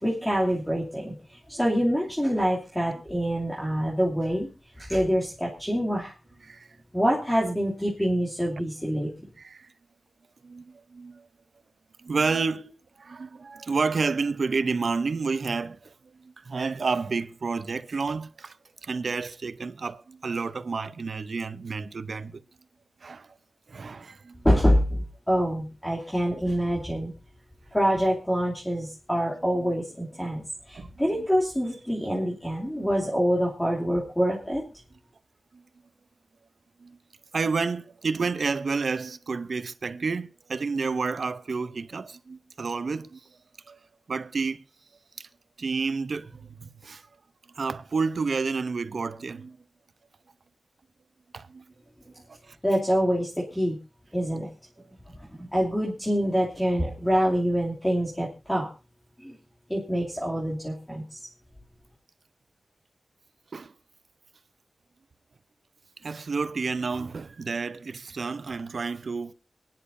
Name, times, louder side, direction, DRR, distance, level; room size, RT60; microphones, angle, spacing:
voice 1, 0.0-4.5 4.8-6.1 6.9-9.1 24.4-27.1 27.7-34.6 52.6-53.8 54.1-54.5 55.1-58.7 59.2-59.3 59.7-61.0, equal, 10° left, 2.9 m, -26 dB
voice 2, 9.4-9.7 10.4-11.3 12.0-18.6 18.8-22.4 23.0-23.3 23.7-24.4 29.5-29.7 30.7-31.2 32.7-32.9 35.5-35.6 36.8-37.0 37.3-43.2 43.7-43.8 44.1-44.6 45.2-45.3 45.6-47.0 47.5-49.6 51.3-51.7 52.3-52.6 63.5-63.7 66.0-69.3, right 4 dB, 70° right, 0.8 m, -30 dB
28.5 x 10.5 x 2.7 m
wide cardioid pair, 110°, 0 cm